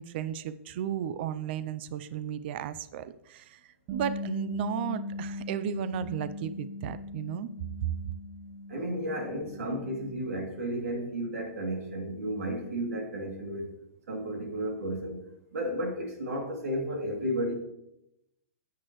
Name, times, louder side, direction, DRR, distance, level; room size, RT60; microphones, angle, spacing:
voice 1, 0.0-3.6 3.9-7.5, right 9 dB, 50° right, 14 dB, 0.5 m, -34 dB
Bass guitar, 3.9-10.1, left 2 dB, 35° right, 1.0 m, -39 dB
voice 2, 8.7-13.7 14.1-17.5, right 1 dB, 85° right, 1 dB, 2.8 m, -33 dB
10.5 x 8.2 x 3.1 m, 0.83 s
hypercardioid pair, 150°, 8 cm